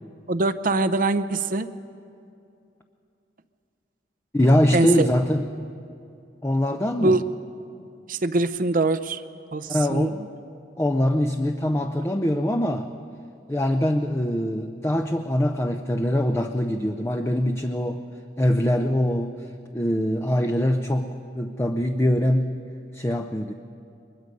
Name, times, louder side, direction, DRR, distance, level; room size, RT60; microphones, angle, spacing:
voice 1, 0.3-1.7 4.7-5.1 7.0-7.2 8.1-9.2 9.5-10.1, right 2 dB, 50° right, 12 dB, 0.7 m, -23 dB
voice 2, 4.3-5.4 6.4-7.2 9.7-10.2 10.8-12.9 13.5-18.0 18.4-21.1 21.3-22.5 22.9-23.5, left 1 dB, 15° left, 5 dB, 0.6 m, -23 dB
23.5 x 21.0 x 5.4 m, 2.6 s
head